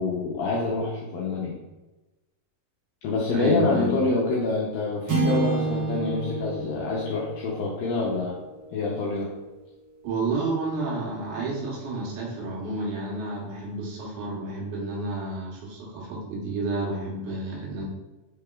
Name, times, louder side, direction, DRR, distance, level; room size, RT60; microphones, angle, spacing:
voice 1, 0.0-1.6 3.0-8.4 8.7-9.3, left 3 dB, 80° left, -4 dB, 2.2 m, -26 dB
voice 2, 3.3-4.0 10.0-17.8, right 2 dB, 65° right, -4 dB, 2.1 m, -30 dB
sound 1, 5.1-9.5, right 4 dB, 85° right, 1.4 m, -31 dB
5.9 x 3.5 x 2.3 m, 1.1 s
omnidirectional pair, 4.6 m